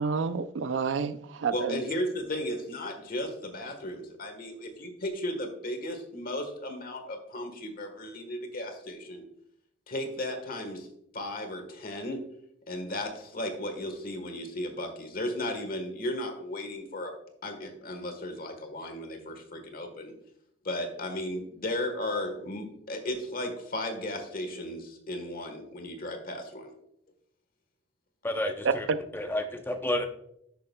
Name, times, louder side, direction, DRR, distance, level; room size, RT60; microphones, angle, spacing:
voice 1, 0.0-1.8 28.6-29.0, right 5 dB, 70° right, 13 dB, 0.4 m, -29 dB
voice 2, 1.5-9.2 9.9-10.9 11.1-12.2 12.7-17.1 17.4-20.1 20.6-26.7, left 1 dB, 50° left, 6 dB, 1.3 m, -35 dB
voice 3, 28.2-28.9 29.1-30.1, left 1 dB, 10° left, 5 dB, 0.6 m, -30 dB
10.5 x 6.7 x 2.2 m, 0.74 s
head